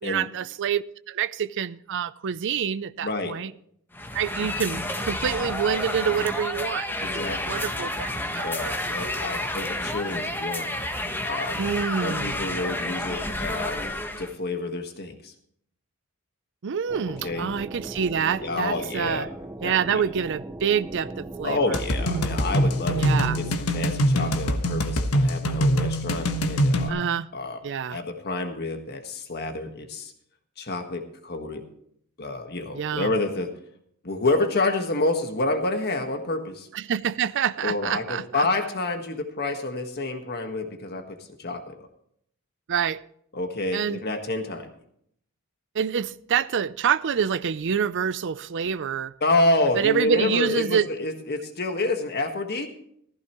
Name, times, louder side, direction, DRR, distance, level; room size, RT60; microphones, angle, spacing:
voice 1, 0.0-3.5 4.1-6.9 7.1-9.1 11.6-12.4 16.6-19.3 19.6-22.4 23.0-23.4 26.9-27.3 27.6-28.0 32.7-33.1 36.7-38.5 42.7-43.0 43.7-44.0 45.7-49.1 49.7-50.9, right 7 dB, 55° right, 0.5 m, -27 dB
voice 2, 3.0-3.3 7.0-7.7 8.4-10.8 11.2-11.6 12.0-15.3 17.1-17.5 18.4-19.3 19.6-20.0 21.4-23.1 23.4-27.0 27.3-27.6 27.9-30.1 30.6-31.6 32.2-33.5 34.0-36.7 37.6-41.9 43.3-44.7 49.2-52.7, left 2 dB, 50° left, 1.5 m, -28 dB
sound 1, 3.9-14.3, left 1 dB, 10° left, 1.3 m, -30 dB
sound 2, 16.9-23.5, right 1 dB, 15° right, 0.6 m, -38 dB
sound 3, 21.7-26.9, equal, 75° left, 1.3 m, -23 dB
15.0 x 15.0 x 3.0 m
head